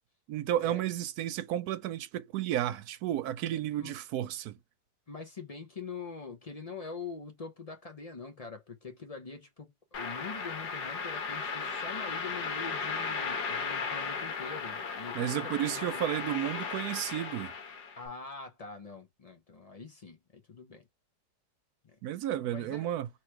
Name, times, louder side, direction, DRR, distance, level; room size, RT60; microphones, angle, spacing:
voice 1, 0.3-4.5 15.1-17.5 22.0-23.1, right 12 dB, 75° right, 1.0 m, -32 dB
voice 2, 5.1-16.1 18.0-20.9 21.8-22.0 22.4-22.9, left 4 dB, 40° left, 0.5 m, -44 dB
sound 1, 9.9-18.0, left 5 dB, 85° left, 1.6 m, -36 dB
3.1 x 3.1 x 4.5 m
omnidirectional pair, 1.7 m